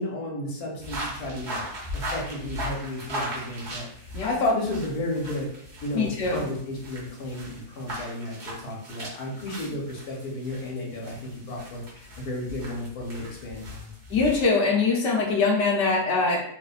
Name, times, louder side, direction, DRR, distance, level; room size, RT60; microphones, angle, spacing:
voice 1, 0.0-1.6 1.9-5.5 5.8-13.9, left 1 dB, 75° left, -1 dB, 1.2 m, -32 dB
sound 1, 0.8-14.4, equal, 50° right, 1.1 m, -38 dB
voice 2, 5.9-6.4 14.1-16.4, left 4 dB, 60° left, -1 dB, 0.9 m, -23 dB
3.1 x 2.1 x 2.4 m, 0.71 s
omnidirectional pair, 1.6 m